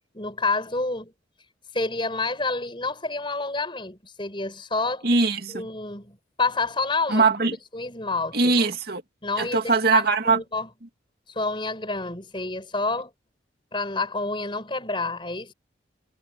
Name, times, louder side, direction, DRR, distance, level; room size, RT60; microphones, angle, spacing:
voice 1, 0.1-1.1 1.7-5.1 5.5-7.2 7.7-8.7 9.2-10.7 11.3-13.1 13.7-15.5, left 3 dB, 25° left, 6.0 m, -28 dB
voice 2, 5.0-5.7 7.1-7.6 8.3-9.0 9.4-10.4, right 4 dB, 55° right, 2.2 m, -21 dB
head